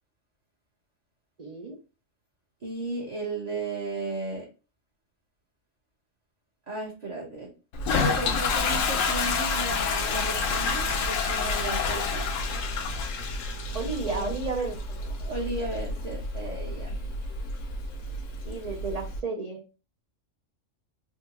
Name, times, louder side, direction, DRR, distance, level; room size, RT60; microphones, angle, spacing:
voice 1, 1.4-1.8 13.7-15.0 18.5-19.6, right 4 dB, 65° right, 1 dB, 0.4 m, -32 dB
voice 2, 2.6-4.5 6.7-7.5 7.8-12.3 14.1-14.3 15.2-17.0, right 2 dB, 40° right, -3 dB, 0.7 m, -35 dB
Toilet flush, 7.7-19.2, left 4 dB, 80° left, 1.0 m, -29 dB
3.6 x 2.2 x 2.8 m, 0.32 s
omnidirectional pair, 1.3 m